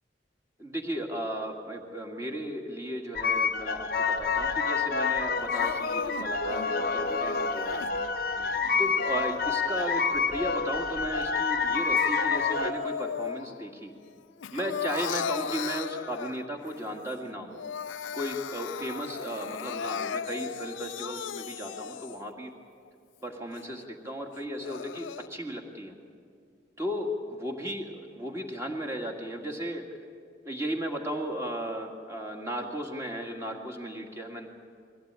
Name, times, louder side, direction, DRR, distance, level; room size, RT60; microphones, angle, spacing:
voice 1, 0.6-7.9 8.8-13.9 14.5-17.6 18.1-22.5 23.2-25.9 26.8-29.8 30.4-34.5, equal, 15° right, 1 dB, 2.0 m, -35 dB
sound 1, 3.2-12.7, left 5 dB, 50° left, 0.8 m, -28 dB
Crying sobbing, 5.5-7.9 8.6-10.3 10.8-13.7 14.0-16.7 17.1-17.2 17.5-22.3 22.9-23.0 23.5-23.6 24.4-25.3, left 7 dB, 90° left, 0.4 m, -37 dB
21.5 x 16.5 x 8.9 m, 2.3 s
head